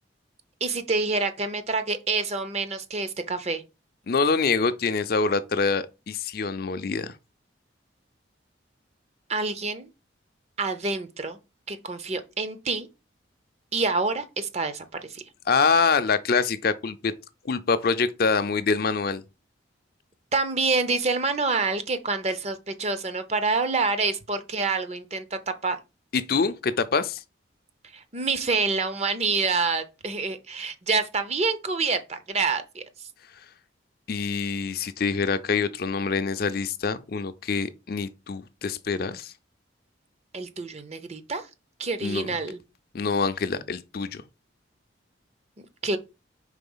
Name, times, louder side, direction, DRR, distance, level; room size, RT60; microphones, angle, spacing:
voice 1, 0.6-3.6 9.3-9.9 10.6-11.4 11.7-12.9 13.7-15.2 20.3-25.8 27.9-32.8 40.3-41.5 41.8-42.6 45.6-46.0, right 4 dB, 35° right, 0.6 m, -27 dB
voice 2, 4.1-7.1 15.5-17.1 17.4-19.2 26.1-27.2 34.1-39.3 42.0-42.3 42.9-44.2, left 4 dB, 50° left, 0.5 m, -25 dB
4.9 x 3.7 x 5.4 m
head